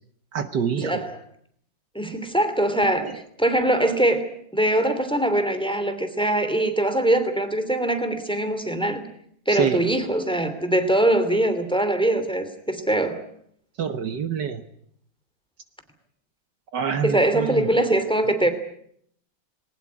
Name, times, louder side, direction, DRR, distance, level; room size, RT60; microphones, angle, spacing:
voice 1, 0.3-1.0 3.0-3.2 9.5-9.9 13.8-14.6 16.7-17.7, right 7 dB, 65° right, 10 dB, 1.7 m, -26 dB
voice 2, 1.9-4.2 4.5-9.0 9.5-13.2 17.0-18.5, right 1 dB, 5° left, 9 dB, 2.7 m, -22 dB
21.0 x 19.0 x 9.6 m, 0.67 s
omnidirectional pair, 2.1 m